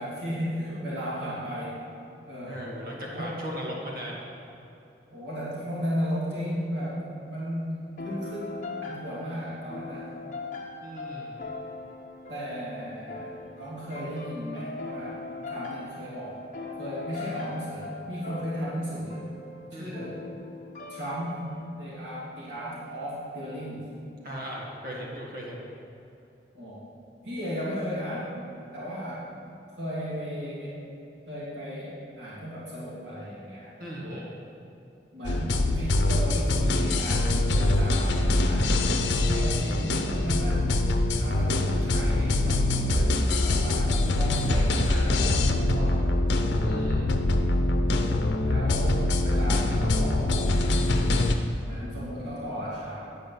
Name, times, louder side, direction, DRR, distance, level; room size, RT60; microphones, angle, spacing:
voice 1, 0.0-1.8 2.3-2.6 3.1-3.4 5.1-7.0 7.3-8.5 8.8-10.2 12.3-16.4 16.8-19.2 19.7-20.2 20.9-23.8 26.5-26.8 27.2-28.4 28.7-29.3 29.8-30.8 31.3-33.7 34.0-34.3 35.1-38.8 39.1-39.9 40.2-40.7 41.2-46.0 46.5-46.9 48.4-50.7 51.6-53.0, equal, 90° right, -8 dB, 2.5 m, -35 dB
voice 2, 2.5-4.2 10.8-11.3 19.7-20.0 24.2-25.7 33.8-34.3 46.6-47.2, equal, 50° right, -3 dB, 1.9 m, -37 dB
sound 1, 8.0-21.7, left 3 dB, 45° left, 1.1 m, -40 dB
sound 2, 35.2-51.3, left 2 dB, 90° left, 0.7 m, -24 dB
9.9 x 5.2 x 7.2 m, 2.8 s
head